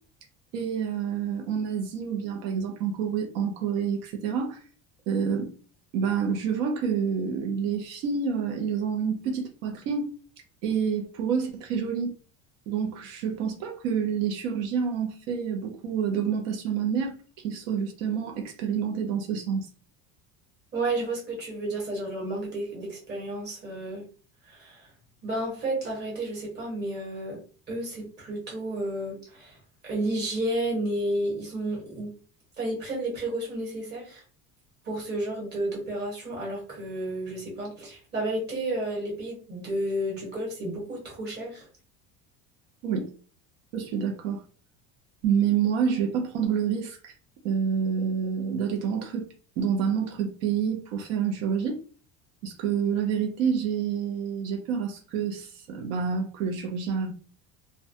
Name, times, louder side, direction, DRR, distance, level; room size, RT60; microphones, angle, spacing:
voice 1, 0.5-4.6 5.1-5.5 5.9-10.1 10.6-12.1 12.7-19.7 42.8-43.1 43.7-44.4 45.2-47.1 47.4-49.3 49.6-51.8 52.4-57.1, right 7 dB, 85° right, 0.7 m, -28 dB
voice 2, 20.7-24.1 24.5-24.9 25.2-27.4 27.7-29.6 29.8-32.1 32.6-34.2 34.8-41.7, right 1 dB, 25° right, 1.1 m, -31 dB
2.2 x 2.1 x 2.7 m
cardioid pair, 160°, 37 cm